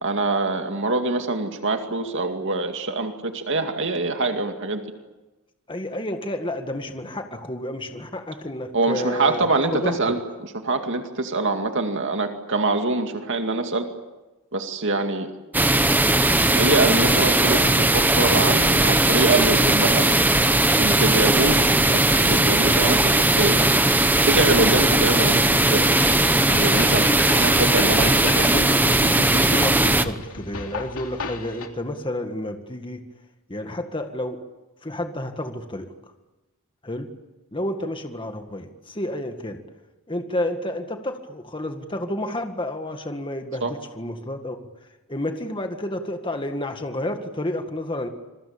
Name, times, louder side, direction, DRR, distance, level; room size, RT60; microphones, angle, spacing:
voice 1, 0.0-4.8 8.7-13.9 14.5-15.3 16.5-20.1 20.8-23.6 24.3-25.9 26.5-27.1 27.3-28.5 43.6-43.7, right 2 dB, 55° right, 5 dB, 2.3 m, -24 dB
voice 2, 5.7-9.5 9.8-10.0 28.1-29.0 29.3-33.0 33.5-34.4 34.8-35.9 36.8-37.1 37.5-39.6 40.1-44.6 45.1-48.1, left 1 dB, 20° left, 6 dB, 1.8 m, -30 dB
sound 1, 15.5-30.1, right 2 dB, 10° right, 1.0 m, -18 dB
sound 2, 25.9-31.7, left 3 dB, 70° left, 3.0 m, -32 dB
27.0 x 22.5 x 8.8 m, 1.1 s
head